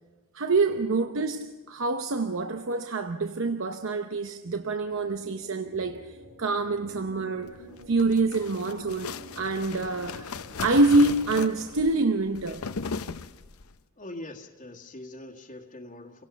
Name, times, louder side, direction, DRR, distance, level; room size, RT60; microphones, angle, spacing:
voice 1, 0.3-7.6 7.9-12.6, right 3 dB, 65° right, 0.8 m, -26 dB
sound 1, 4.5-11.8, equal, 80° right, 3.9 m, -50 dB
sound 2, 7.7-13.7, left 5 dB, 80° left, 0.7 m, -37 dB
voice 2, 14.0-16.2, left 1 dB, 35° left, 1.6 m, -42 dB
27.5 x 17.5 x 5.8 m
head